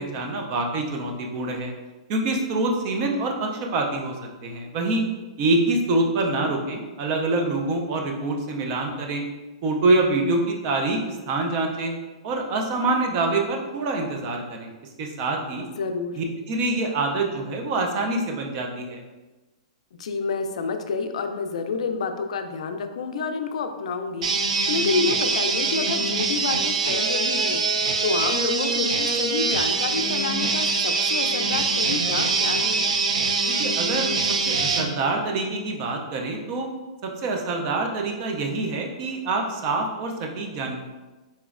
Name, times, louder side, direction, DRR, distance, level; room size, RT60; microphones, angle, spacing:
voice 1, 0.0-1.7 2.1-4.2 4.4-5.0 5.4-9.2 9.6-11.9 12.2-14.7 15.0-15.6 16.2-19.0 33.5-34.1 34.4-36.7 37.0-40.8, right 2 dB, 25° right, 2 dB, 0.4 m, -25 dB
voice 2, 6.2-6.6 15.6-16.2 20.0-32.9, left 5 dB, 70° left, 6 dB, 0.4 m, -29 dB
sound 1, 24.2-34.9, right 4 dB, 90° right, 0.5 m, -23 dB
4.2 x 3.0 x 2.4 m, 1.2 s
hypercardioid pair, 175°, 4 cm